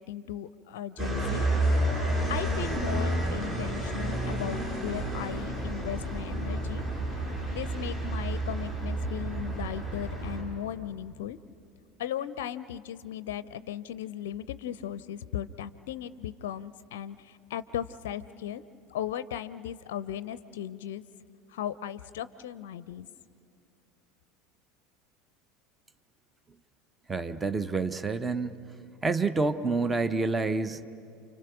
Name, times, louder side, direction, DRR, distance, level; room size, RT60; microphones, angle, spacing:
voice 1, 0.0-1.4 2.3-6.8 7.5-11.4 12.0-18.6 18.9-21.0 21.5-23.1, left 10 dB, 60° left, 15 dB, 0.5 m, -37 dB
sound 1, 1.0-10.4, right 1 dB, 35° right, 7.9 m, -30 dB
voice 2, 27.1-28.6 29.0-30.9, right 3 dB, 15° right, 12 dB, 0.8 m, -28 dB
29.0 x 25.5 x 6.1 m, 2.5 s
figure-of-eight pair, 70°, 0 cm